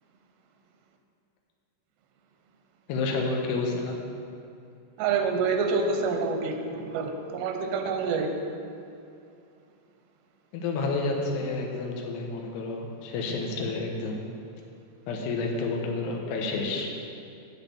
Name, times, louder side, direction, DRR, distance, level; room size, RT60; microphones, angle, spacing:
voice 1, 2.9-4.0 6.7-6.8 10.5-14.2 15.1-16.9, left 3 dB, 75° left, 0 dB, 3.1 m, -30 dB
voice 2, 5.0-8.3, right 4 dB, 85° right, 4 dB, 3.0 m, -27 dB
8.6 x 6.6 x 8.5 m, 2.6 s
omnidirectional pair, 4.9 m